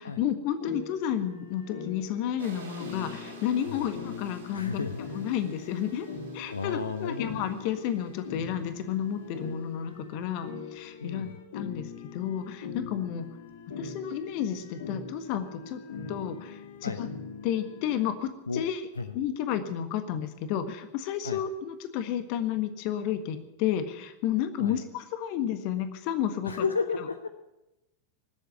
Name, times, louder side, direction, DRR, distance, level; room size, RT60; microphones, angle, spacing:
voice 1, 0.0-4.9 5.1-6.1 6.3-11.3 11.5-13.3 13.8-15.8 16.1-17.1 17.4-18.8 19.1-26.6 27.0-27.1, left 9 dB, 45° left, 9 dB, 1.6 m, -31 dB
sound 1, 0.6-18.0, left 5 dB, 60° left, 2.1 m, -42 dB
sound 2, 2.4-9.5, right 4 dB, 65° right, 4.5 m, -50 dB
voice 2, 4.5-5.0 6.5-7.4 11.0-11.3 16.8-17.0 18.5-18.6 19.0-19.1 21.2-21.4 24.6-24.8 26.4-27.3, left 4 dB, 75° left, 9 dB, 0.8 m, -32 dB
19.0 x 8.1 x 9.4 m, 0.97 s
figure-of-eight pair, 90°, 0 cm